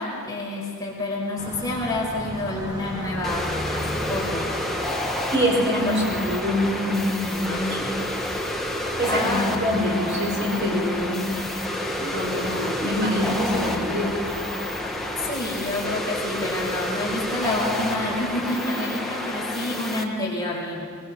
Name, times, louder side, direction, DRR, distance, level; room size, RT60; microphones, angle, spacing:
voice 1, 0.0-4.5 5.8-6.0 9.1-9.5 9.8-10.0 15.1-20.8, left 2 dB, 15° left, -4 dB, 4.9 m, -28 dB
Car passing by, 1.4-18.6, equal, 15° right, 2.1 m, -37 dB
sound 1, 3.2-20.0, left 1 dB, ahead, 1.5 m, -30 dB
voice 2, 5.3-7.9 9.0-11.4 12.0-14.2, equal, 55° right, -2 dB, 6.5 m, -25 dB
22.5 x 22.5 x 6.3 m, 2.2 s
head